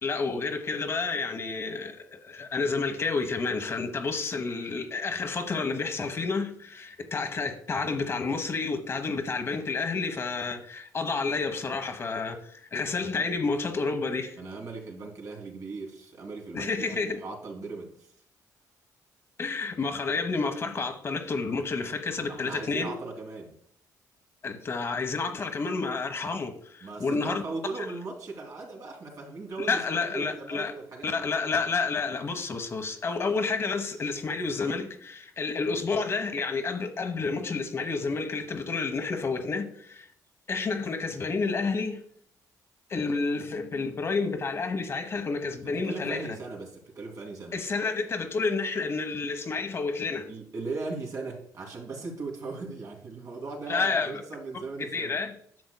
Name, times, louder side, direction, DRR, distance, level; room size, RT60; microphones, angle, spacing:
voice 1, 0.0-14.3 16.5-17.2 19.4-22.9 24.4-27.4 29.6-30.7 31.0-40.1 40.5-42.0 42.9-46.4 47.5-50.3 53.7-54.2 54.8-55.3, left 4 dB, 40° left, 1.0 m, -30 dB
voice 2, 14.4-18.1 22.2-23.6 26.8-31.2 45.6-47.6 50.3-55.2, right 3 dB, 55° right, 2.7 m, -38 dB
10.5 x 6.8 x 2.2 m
cardioid pair, 95°, 7 cm